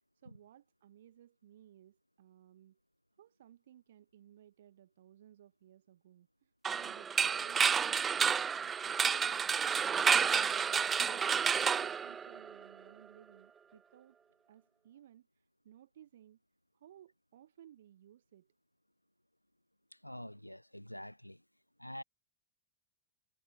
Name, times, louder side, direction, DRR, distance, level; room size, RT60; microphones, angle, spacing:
voice 1, 0.2-2.8 3.2-10.8 11.0-14.2 14.5-16.4 16.7-18.5, right 11 dB, 60° right, 5.3 m, -59 dB
sound 1, 6.6-12.6, right 7 dB, 20° right, 0.3 m, -30 dB
voice 2, 19.9-21.4 21.8-22.0, equal, 90° left, 2.1 m, -46 dB
figure-of-eight pair, 90°, 0 cm